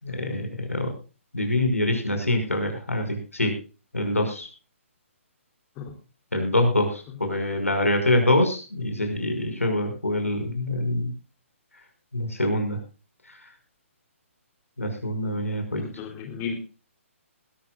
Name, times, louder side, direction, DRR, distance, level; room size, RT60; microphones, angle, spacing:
voice 1, 0.0-0.9 1.3-3.6 3.9-4.5 6.3-11.1 12.1-12.8 14.8-15.8, left 1 dB, 85° left, 5 dB, 5.8 m, -25 dB
voice 2, 15.7-16.5, left 6 dB, 25° left, 3 dB, 3.2 m, -34 dB
20.5 x 13.0 x 2.4 m, 0.33 s
figure-of-eight pair, 130°, 7 cm